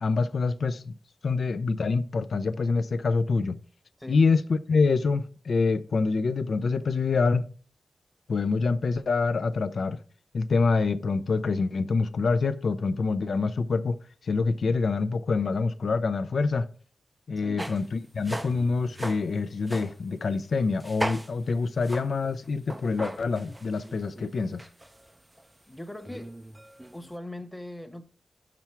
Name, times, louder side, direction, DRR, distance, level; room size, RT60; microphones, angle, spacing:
voice 1, 0.0-0.9 1.2-3.6 4.1-7.5 8.3-10.0 10.3-16.7 17.3-24.7, left 4 dB, 70° left, 0.4 m, -26 dB
sound 1, 17.6-17.9 18.2-20.0 20.8-21.5 21.8-25.5 26.0-27.1, right 1 dB, 15° right, 0.3 m, -38 dB
voice 2, 25.7-26.3 26.9-28.1, left 1 dB, 5° left, 0.9 m, -40 dB
5.9 x 5.9 x 4.4 m
cardioid pair, 75°, 0 cm